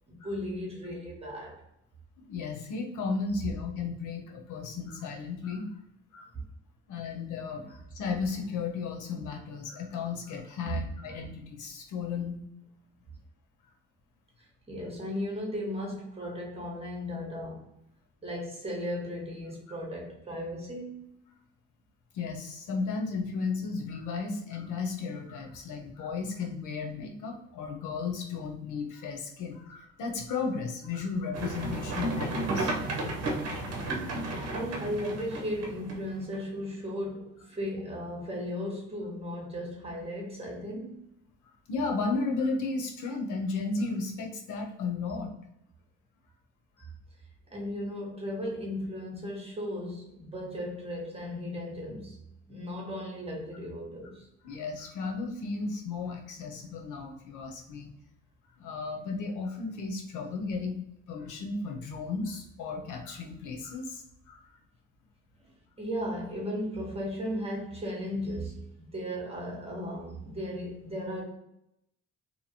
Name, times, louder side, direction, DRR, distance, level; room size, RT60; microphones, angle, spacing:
voice 1, 0.1-1.6 10.7-10.9 14.7-17.7 18.2-21.2 34.5-41.0 47.5-52.2 52.5-54.3 65.8-71.2, equal, 20° right, -2 dB, 1.1 m, -36 dB
voice 2, 2.2-5.7 6.1-6.3 6.9-12.4 22.1-32.7 41.7-45.3 46.8-46.9 54.4-57.9 58.6-60.7 61.1-64.5, left 4 dB, 80° left, 2 dB, 0.7 m, -34 dB
sound 1, 31.3-36.3, right 2 dB, 55° right, 0.8 m, -33 dB
2.8 x 2.4 x 2.8 m, 0.78 s
cardioid pair, 90°, 30 cm